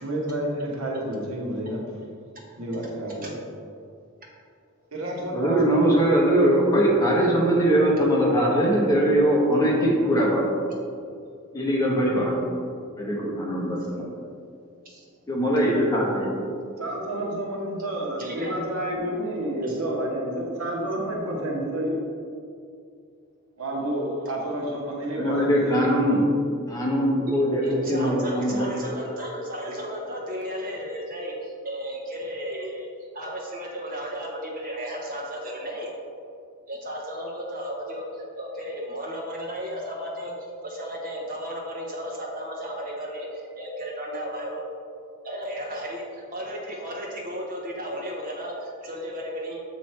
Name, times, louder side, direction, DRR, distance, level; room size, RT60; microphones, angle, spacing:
voice 1, 0.0-1.8 2.6-3.4 4.9-6.0 16.8-22.0 23.6-25.9, right 1 dB, 85° right, -2 dB, 1.2 m, -29 dB
voice 2, 5.3-10.5 11.5-12.4 13.0-14.1 15.3-16.3 25.2-26.2 26.7-28.7, equal, 15° left, -4 dB, 1.0 m, -21 dB
voice 3, 18.2-18.5 19.7-19.8 27.3-32.9 33.1-35.9 36.7-44.6 45.2-49.6, equal, 40° right, -3 dB, 1.2 m, -34 dB
7.6 x 3.2 x 4.3 m, 2.3 s
head